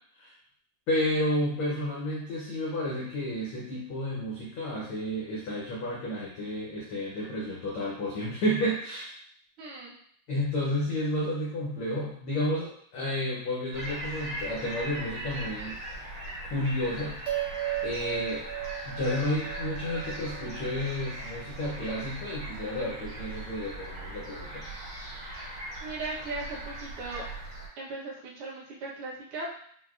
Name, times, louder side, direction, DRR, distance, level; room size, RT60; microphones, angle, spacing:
voice 1, 0.9-9.1 10.3-15.8 16.4-17.2 17.8-18.4 18.9-24.6, left 1 dB, 90° left, -5 dB, 1.2 m, -31 dB
voice 2, 9.6-9.9 25.8-27.2 27.8-29.5, right 3 dB, 65° right, -5 dB, 1.4 m, -38 dB
sound 1, 13.7-27.7, right 1 dB, 45° right, 1.1 m, -39 dB
sound 2, 17.3-21.9, right 13 dB, 80° right, 2.1 m, -37 dB
6.1 x 2.0 x 2.4 m, 0.63 s
omnidirectional pair, 3.4 m